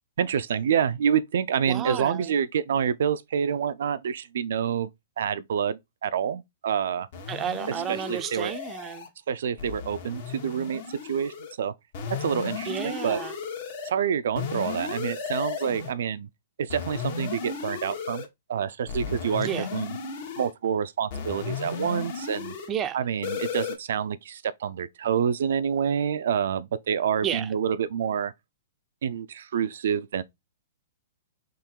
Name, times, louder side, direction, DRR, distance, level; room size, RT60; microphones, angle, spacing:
voice 1, 0.2-4.9 5.2-7.1 7.7-7.8 8.1-8.5 9.3-11.7 12.2-13.2 13.8-16.3 16.6-19.9 20.4-22.5 22.9-28.3 29.0-30.2, right 8 dB, 70° right, 0.5 m, -27 dB
voice 2, 1.7-2.3 7.3-9.1 12.6-13.3 19.4-19.7 22.7-23.0 27.2-27.5, right 9 dB, 20° right, 0.5 m, -31 dB
sound 1, 7.1-9.1 9.6-11.5 11.9-13.9 14.4-15.9 16.7-18.3 18.9-20.5 21.1-22.7 23.2-23.8, left 6 dB, 55° left, 1.4 m, -35 dB
3.8 x 3.1 x 4.5 m
hypercardioid pair, 150°, 0 cm